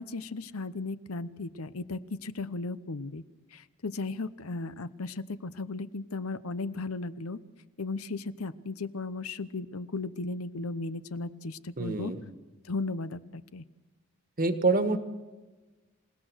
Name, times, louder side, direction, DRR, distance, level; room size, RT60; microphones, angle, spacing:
voice 1, 0.0-3.2 3.5-7.4 7.8-12.1 12.6-13.6, left 3 dB, 80° left, 14 dB, 0.9 m, -36 dB
voice 2, 11.8-12.2 14.4-15.0, right 3 dB, 40° right, 8 dB, 1.6 m, -26 dB
27.5 x 17.5 x 6.4 m, 1.2 s
head